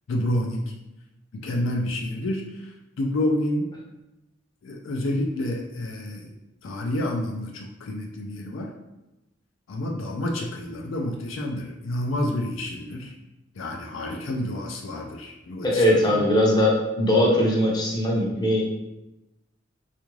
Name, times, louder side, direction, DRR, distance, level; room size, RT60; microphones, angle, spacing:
voice 1, 0.1-0.7 1.3-3.7 4.6-6.4 6.6-8.7 9.7-13.1 13.6-16.2, left 1 dB, 65° left, 1 dB, 0.4 m, -29 dB
voice 2, 15.6-18.6, left 1 dB, 20° left, -3 dB, 0.6 m, -20 dB
3.4 x 2.4 x 3.1 m, 0.95 s
head